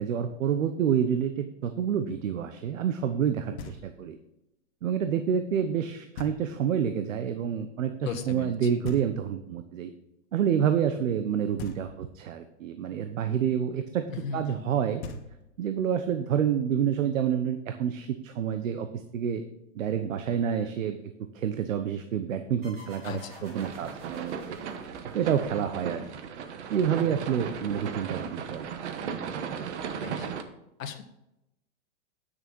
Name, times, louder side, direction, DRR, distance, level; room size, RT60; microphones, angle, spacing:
voice 1, 0.0-4.2 4.8-9.9 10.3-14.0 14.3-15.0 15.6-19.4 19.7-21.0 21.3-24.6 25.1-26.0 26.7-28.2 28.5-28.7 29.6-29.8, right 8 dB, 80° right, 8 dB, 1.0 m, -28 dB
Knock, 3.6-4.2 6.2-6.8 8.8-9.6 11.6-12.3 14.6-14.7 15.0-15.8, left 3 dB, 50° left, 1.6 m, -42 dB
voice 2, 8.0-8.7 14.1-14.7 23.0-23.5 29.9-30.3 30.8-31.0, left 7 dB, 90° left, 8 dB, 1.5 m, -37 dB
sound 1, 22.6-25.9, right 1 dB, 25° right, 3.7 m, -50 dB
sound 2, 23.5-30.4, right 7 dB, 60° right, 1.2 m, -36 dB
9.1 x 6.8 x 5.4 m, 0.89 s
supercardioid pair, 165°, 39 cm